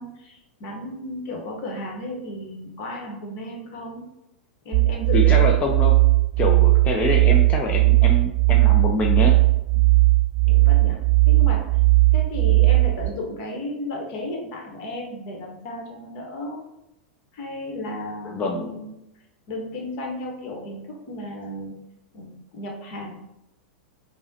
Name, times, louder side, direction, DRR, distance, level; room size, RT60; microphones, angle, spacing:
voice 1, 0.0-4.0 4.6-5.6 9.7-10.0 10.5-11.0 11.3-11.7 12.1-16.6 17.3-18.9 19.5-21.7 22.1-23.1, left 1 dB, 50° left, 0 dB, 1.1 m, -34 dB
sound 1, 4.7-13.1, right 21 dB, 45° right, 0.3 m, -17 dB
voice 2, 5.1-5.9 6.4-9.3 18.2-18.7, left 3 dB, 25° left, 0 dB, 0.4 m, -25 dB
5.3 x 2.1 x 2.8 m, 0.90 s
hypercardioid pair, 100°, 5 cm